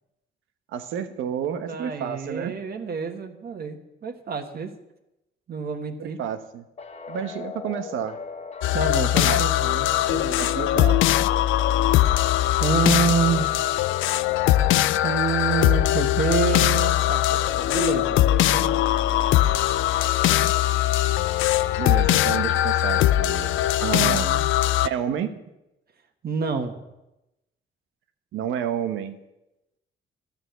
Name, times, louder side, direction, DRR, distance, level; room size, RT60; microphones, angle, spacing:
voice 1, 0.7-2.5 6.0-6.6 7.1-8.2 9.2-9.4 10.4-11.0 21.8-24.3 24.8-25.3 28.3-29.2, right 9 dB, 85° right, 9 dB, 1.1 m, -30 dB
voice 2, 1.7-4.7 5.5-6.2 8.7-11.1 12.6-13.7 15.0-18.8 24.0-24.4 26.2-26.7, right 6 dB, 50° right, 5 dB, 1.6 m, -28 dB
sound 1, 6.8-20.6, left 6 dB, 35° left, 1.1 m, -37 dB
sound 2, 8.6-24.9, left 14 dB, 80° left, 0.4 m, -21 dB
sound 3, 18.7-24.1, right 2 dB, 25° right, 1.7 m, -47 dB
11.5 x 6.7 x 8.0 m, 0.94 s
cardioid pair, 90°, 20 cm